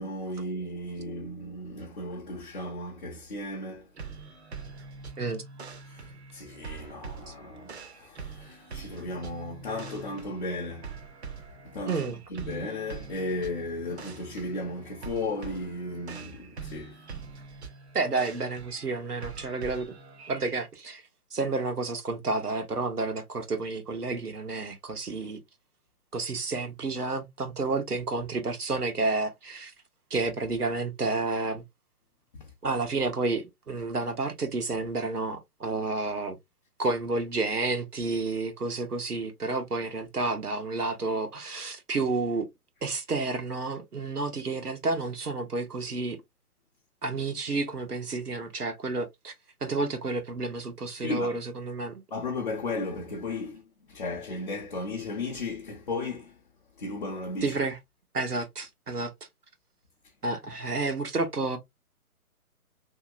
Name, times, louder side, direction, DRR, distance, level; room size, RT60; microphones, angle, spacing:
voice 1, 0.0-3.9 5.9-11.0 11.6-17.0 32.3-32.5 51.0-51.4 52.1-56.4 56.8-57.6, left 2 dB, 35° left, 0.6 m, -35 dB
sound 1, 4.0-20.7, right 5 dB, 45° right, 0.6 m, -44 dB
voice 2, 11.9-12.2 17.9-19.9 20.3-21.0 21.3-25.4 26.1-29.7 30.1-31.6 32.6-36.4 36.8-42.5 42.8-46.2 47.0-49.3 49.6-52.0 57.4-57.8 58.1-59.1 60.2-61.6, right 3 dB, 90° right, 0.9 m, -30 dB
2.8 x 2.8 x 2.4 m
figure-of-eight pair, 135°, 45 cm